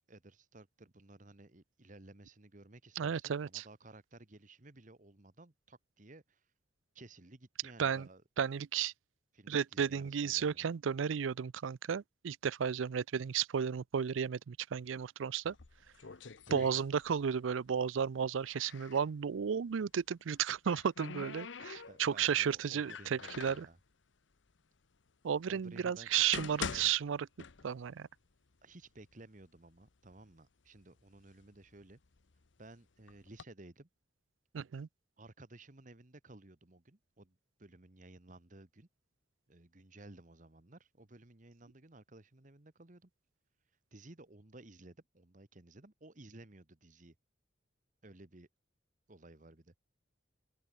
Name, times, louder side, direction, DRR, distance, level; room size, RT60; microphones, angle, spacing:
voice 1, 0.1-6.5 6.9-8.2 9.3-10.7 16.5-16.8 21.6-23.8 25.5-26.9 28.6-32.0 32.6-33.9 35.2-38.9 39.5-43.1 43.9-47.1 48.0-48.5 49.1-49.8, right 2 dB, 40° right, 1.3 m, -56 dB
voice 2, 3.0-3.6 7.8-8.1 8.4-8.9 9.5-15.5 16.5-23.7 25.2-27.3 27.6-28.1 34.5-34.9, right 7 dB, 85° right, 0.4 m, -33 dB
sound 1, 15.5-17.4 17.7-19.1 20.2-22.2 22.8-23.7 24.5-24.6 25.3-25.4 26.0-28.0 28.3-28.4 29.1-29.2 29.6-30.2 30.8-32.5 33.1-33.4, left 5 dB, 75° left, 0.9 m, -45 dB
head